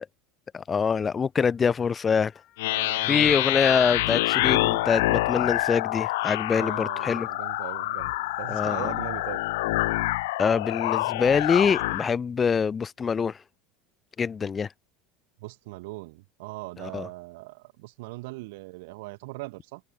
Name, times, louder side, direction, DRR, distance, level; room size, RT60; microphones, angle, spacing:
voice 1, 0.5-2.3 3.1-7.3 8.5-8.9 10.4-13.4 14.2-14.7 16.8-17.1, left 6 dB, 15° left, 0.5 m, -25 dB
sound 1, 0.8-7.9, left 14 dB, 35° left, 6.8 m, -63 dB
sound 2, 2.6-12.1, left 19 dB, 85° left, 0.8 m, -26 dB
voice 2, 2.7-3.5 6.6-9.4 15.4-19.8, right 23 dB, 70° right, 5.4 m, -40 dB
cardioid pair, 170°, 0 cm